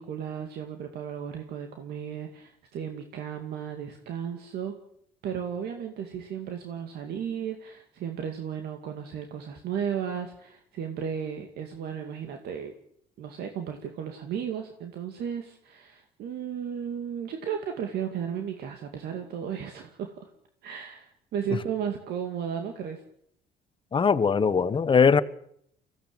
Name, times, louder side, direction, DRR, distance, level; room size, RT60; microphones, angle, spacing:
voice 1, 0.0-4.7 5.2-12.7 13.2-20.3 20.6-23.0, right 8 dB, 70° right, 2.4 m, -34 dB
voice 2, 23.9-25.2, left 6 dB, 30° left, 1.2 m, -20 dB
24.0 x 16.5 x 8.8 m
cardioid pair, 110°, 17 cm